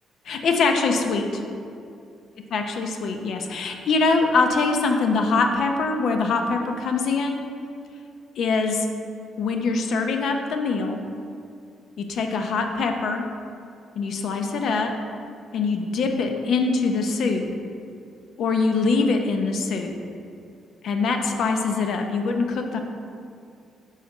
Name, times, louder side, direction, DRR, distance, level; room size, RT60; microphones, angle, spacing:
voice 1, 0.3-1.4 2.5-7.4 8.4-8.9 9.4-11.0 12.0-13.3 13.9-14.9 15.5-17.5 18.4-19.9 20.8-22.8, left 4 dB, 65° left, 4 dB, 0.6 m, -23 dB
5.0 x 3.9 x 5.4 m, 2.4 s
cardioid pair, 90°, 0 cm